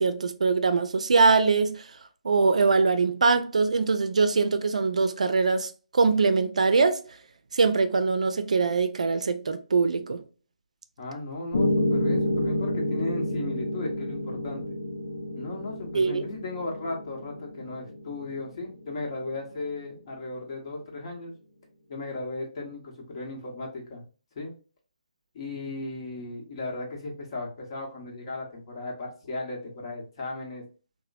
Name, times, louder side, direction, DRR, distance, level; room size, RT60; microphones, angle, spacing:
voice 1, 0.0-1.9 2.2-7.0 7.5-10.2 15.9-16.2, right 4 dB, 65° right, 0.4 m, -23 dB
voice 2, 11.0-14.8 15.3-21.3 21.9-24.0 24.3-24.5 25.3-30.6, left 2 dB, 45° left, 1.0 m, -36 dB
Piano, 11.5-19.6, left 1 dB, 70° left, 0.7 m, -30 dB
2.9 x 2.1 x 2.5 m
figure-of-eight pair, 145°, 4 cm